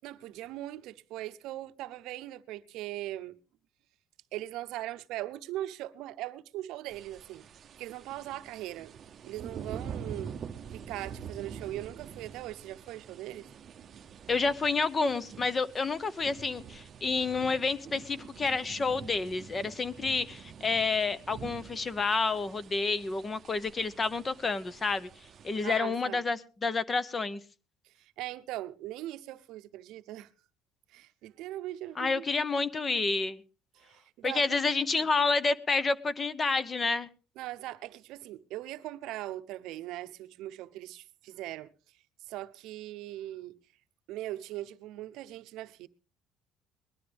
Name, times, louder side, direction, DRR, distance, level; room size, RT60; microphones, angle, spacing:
voice 1, 0.0-3.4 4.3-7.4 7.8-8.9 9.2-10.4 10.7-13.5 25.6-26.2 27.8-30.3 30.9-32.2 33.7-34.7 35.0-35.1 37.4-41.7 42.3-43.6 44.1-45.9, right 15 dB, 75° right, 0.7 m, -40 dB
sound 1, 6.9-25.8, right 7 dB, 40° right, 0.7 m, -46 dB
voice 2, 14.3-25.1 25.4-27.4 32.0-33.4 34.2-37.1, left 4 dB, 25° left, 0.8 m, -29 dB
20.0 x 12.0 x 3.4 m
cardioid pair, 145°, 0 cm